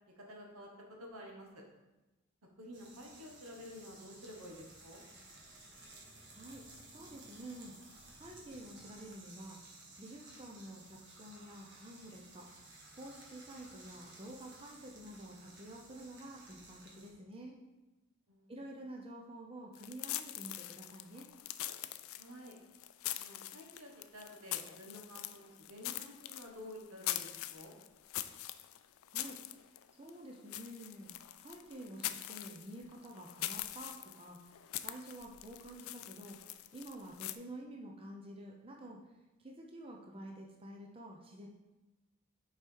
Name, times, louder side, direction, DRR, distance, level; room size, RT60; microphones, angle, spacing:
voice 1, 0.1-1.6 2.6-5.0 18.3-18.7 22.2-22.6 23.1-27.7, left 1 dB, 85° right, 0 dB, 1.4 m, -51 dB
sound 1, 2.7-17.1, right 2 dB, 55° right, 1.4 m, -56 dB
sound 2, 4.2-9.1, left 1 dB, 25° left, 0.6 m, -64 dB
voice 2, 6.3-6.7 6.9-7.8 8.2-9.6 10.0-17.6 18.5-21.3 29.1-39.1 39.4-41.5, right 1 dB, 25° right, 0 dB, 0.7 m, -50 dB
sound 3, 19.7-37.3, left 14 dB, 75° left, 0.4 m, -43 dB
6.5 x 4.8 x 4.7 m, 1.0 s
head